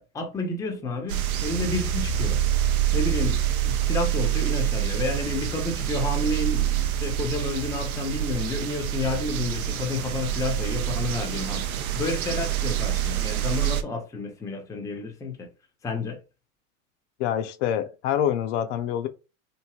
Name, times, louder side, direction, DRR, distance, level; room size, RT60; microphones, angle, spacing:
voice 1, 0.0-2.4 2.9-15.5 15.8-16.2, left 3 dB, 10° left, 0.5 m, -30 dB
sound 1, 1.1-13.8, right 11 dB, 85° right, 0.6 m, -26 dB
voice 2, 17.2-19.1, left 10 dB, 60° left, 0.5 m, -26 dB
3.1 x 2.6 x 2.2 m
hypercardioid pair, 100°, 42 cm